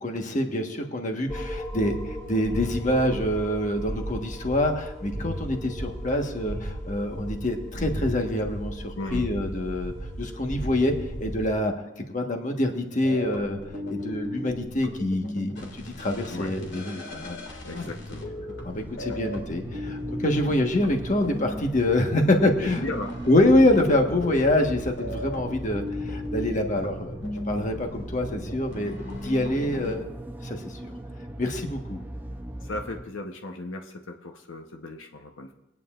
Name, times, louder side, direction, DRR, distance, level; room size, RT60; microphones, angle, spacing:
voice 1, 0.0-9.9 10.2-10.9 11.2-11.7 12.1-13.6 13.9-17.4 17.7-17.9 18.6-22.8 23.3-27.1 27.5-28.9 29.2-30.1 30.4-30.8 31.4-32.0, left 1 dB, 40° left, 3 dB, 1.3 m, -25 dB
sound 1, 1.3-11.6, equal, 15° left, 1.8 m, -35 dB
voice 2, 8.9-9.3 16.3-16.6 17.6-18.3 19.1-19.2 22.6-23.1 32.6-35.5, left 2 dB, 85° left, 3 dB, 0.9 m, -36 dB
sound 2, 13.0-30.0, left 1 dB, 65° left, 2.2 m, -37 dB
sound 3, 18.1-33.0, right 1 dB, 10° right, 0.6 m, -39 dB
22.5 x 9.3 x 2.5 m, 0.99 s
head